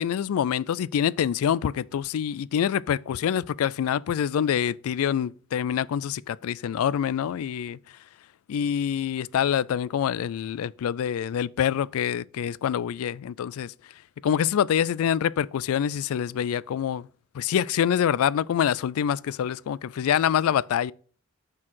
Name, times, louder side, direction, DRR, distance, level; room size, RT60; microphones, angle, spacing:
voice 1, 0.0-7.8 8.5-13.7 14.2-17.1 17.3-20.9, left 9 dB, 70° left, 0.3 m, -26 dB
6.0 x 4.6 x 6.2 m
head